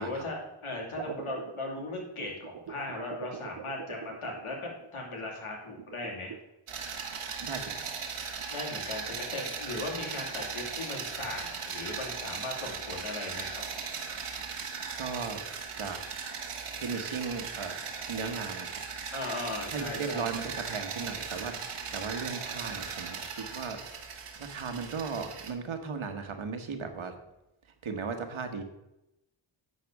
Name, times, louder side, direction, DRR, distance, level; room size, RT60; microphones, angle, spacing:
voice 1, 0.0-6.3 8.5-13.6 19.1-20.3, left 2 dB, 90° left, -2 dB, 2.8 m, -38 dB
sound 1, 0.7-4.9 5.8-6.4, right 8 dB, 60° right, 0.7 m, -43 dB
sound 2, 6.7-25.5, right 5 dB, 90° right, 1.3 m, -38 dB
voice 2, 7.4-7.9 15.0-15.4 15.8-16.0 16.8-17.8 18.1-18.8 19.7-24.1 24.4-27.2 27.8-28.6, right 5 dB, 75° right, 7 dB, 1.4 m, -36 dB
9.9 x 4.3 x 7.2 m, 0.89 s
cardioid pair, 55°, 49 cm